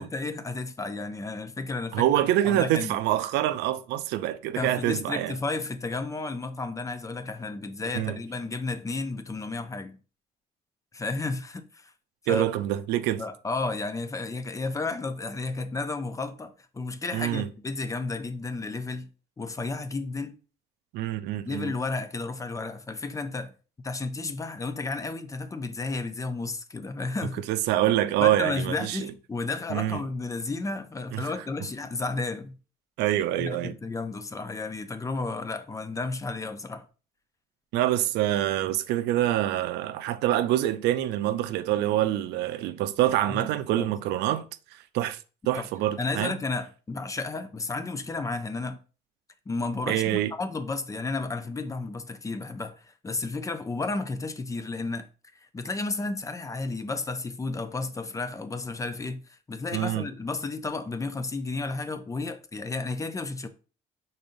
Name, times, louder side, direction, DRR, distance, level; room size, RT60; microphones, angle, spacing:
voice 1, 0.0-2.1 2.4-3.0 4.6-10.0 10.9-11.9 12.2-12.5 13.2-19.1 19.4-20.4 21.5-23.5 23.8-27.4 28.2-32.5 33.4-36.9 43.3-43.5 43.8-43.9 45.5-45.7 46.0-48.8 49.5-55.1 55.5-63.5, left 3 dB, 20° left, 0.5 m, -32 dB
voice 2, 1.9-5.3 7.9-8.2 12.3-13.2 17.1-17.5 20.9-21.7 27.5-29.1 29.7-30.0 31.1-31.2 33.0-33.8 37.7-44.5 44.7-45.2 45.5-46.4 49.9-50.3 59.7-60.1, right 13 dB, 85° right, 0.4 m, -26 dB
5.3 x 3.9 x 2.5 m
cardioid pair, 110°, 17 cm